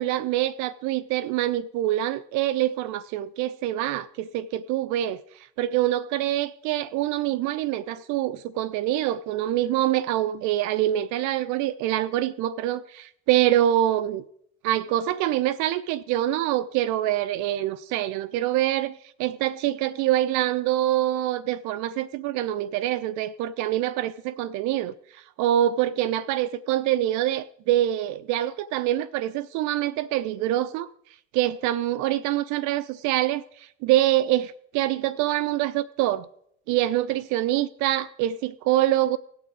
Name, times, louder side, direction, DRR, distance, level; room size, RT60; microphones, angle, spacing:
voice 1, 0.0-5.2 5.6-14.2 14.6-30.9 31.3-36.3 36.7-39.2, right 13 dB, 50° right, 0.6 m, -25 dB
17.5 x 6.0 x 4.8 m
figure-of-eight pair, 65°, 39 cm